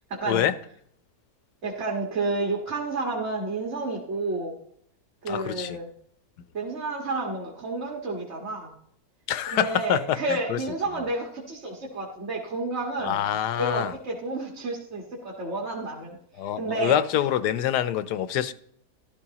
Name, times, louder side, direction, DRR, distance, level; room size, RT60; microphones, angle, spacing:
voice 1, 0.1-0.5 1.6-4.5 5.2-5.9 6.5-8.7 9.5-13.3 13.6-16.2 16.6-16.9, right 2 dB, 45° right, 1.9 m, -30 dB
voice 2, 5.3-5.8 9.3-10.6 13.0-13.9 16.4-18.5, left 10 dB, 85° left, 1.3 m, -26 dB
13.5 x 12.5 x 2.9 m
omnidirectional pair, 1.7 m